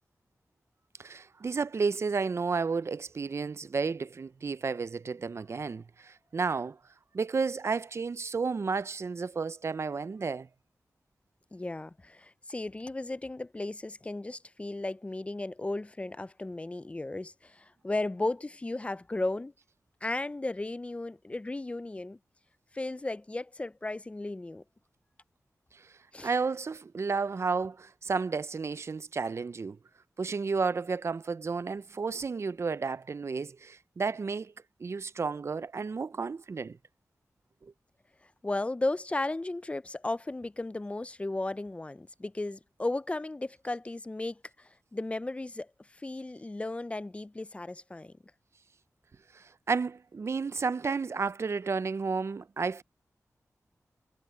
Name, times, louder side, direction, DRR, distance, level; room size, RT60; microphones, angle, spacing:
voice 1, 1.0-6.8 7.1-10.5 25.7-25.9 26.2-29.8 30.2-34.5 34.8-36.8 37.6-37.7 49.3-52.8, right 4 dB, 50° right, 0.4 m, -32 dB
voice 2, 11.5-19.5 20.0-22.2 22.7-24.6 26.1-26.3 38.4-48.1, left 2 dB, 20° left, 0.4 m, -35 dB
wide cardioid pair, 95°, 6 cm